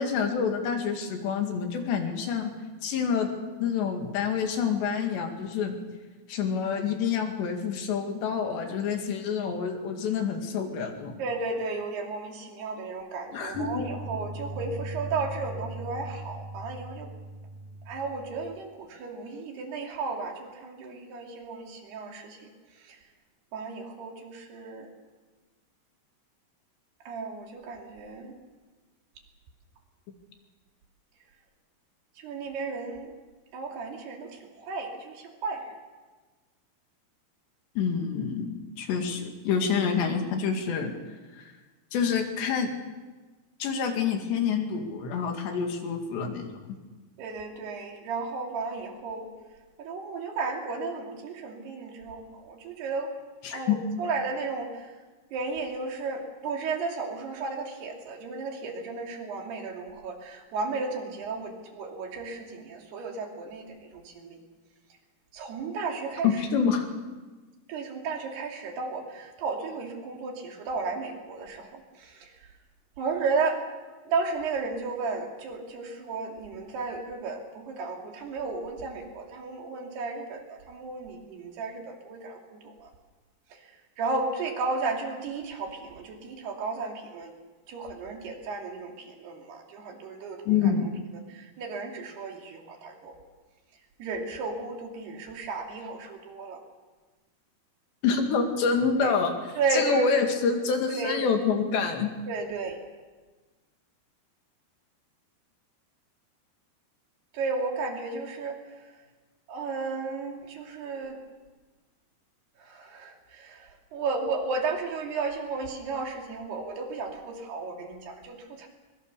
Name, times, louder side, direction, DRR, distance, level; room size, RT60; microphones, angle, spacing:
voice 1, 0.0-2.5 2.8-3.3 3.6-5.7 6.3-11.1 13.3-13.8 37.8-40.9 41.3-41.5 41.9-42.7 43.6-46.6 53.4-53.8 66.2-66.9 90.5-90.9 98.0-102.2, left 6 dB, 85° left, 4 dB, 4.4 m, -27 dB
voice 2, 11.2-17.1 17.9-23.0 23.5-24.9 27.1-28.4 32.2-33.2 33.5-35.8 47.2-49.3 49.8-53.1 53.5-54.9 55.3-64.4 65.3-66.4 67.7-72.5 73.0-73.6 74.1-82.9 83.5-87.3 87.7-90.9 91.3-93.1 94.0-96.6 99.0-99.2 99.6-100.1 101.0-101.2 102.3-102.8 107.3-108.9 109.5-111.2 112.6-118.7, right 4 dB, 70° right, 2 dB, 4.6 m, -34 dB
sound 1, 13.5-18.5, right 2 dB, 55° right, 6.7 m, -39 dB
23.0 x 22.5 x 6.8 m, 1.3 s
omnidirectional pair, 4.8 m